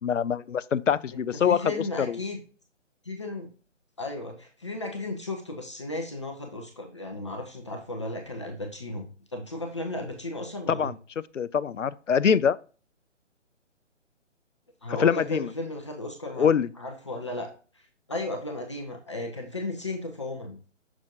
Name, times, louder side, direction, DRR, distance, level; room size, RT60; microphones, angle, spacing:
voice 1, 0.0-2.2 10.7-10.9 11.3-12.6 14.9-15.5 16.4-16.7, left 7 dB, 75° left, 0.5 m, -24 dB
voice 2, 1.1-2.4 3.0-3.5 4.0-10.9 14.8-16.5 16.8-20.6, left 2 dB, 25° left, 0.7 m, -35 dB
6.6 x 6.1 x 2.5 m
figure-of-eight pair, 145°, 37 cm